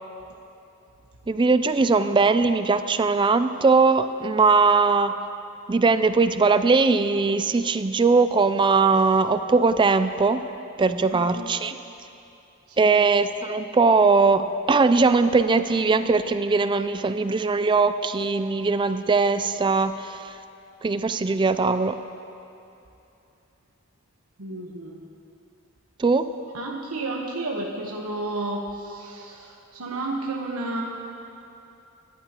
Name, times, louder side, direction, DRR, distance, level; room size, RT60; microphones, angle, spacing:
voice 1, 1.3-5.1 5.7-10.4 10.8-11.7 12.8-20.3 20.8-22.0 26.0-26.2, right 4 dB, 20° right, 11 dB, 0.4 m, -20 dB
voice 2, 11.0-11.6 12.7-13.0 24.4-25.1 26.5-30.8, right 2 dB, 80° right, -1 dB, 1.2 m, -32 dB
22.5 x 11.5 x 3.0 m, 2.8 s
head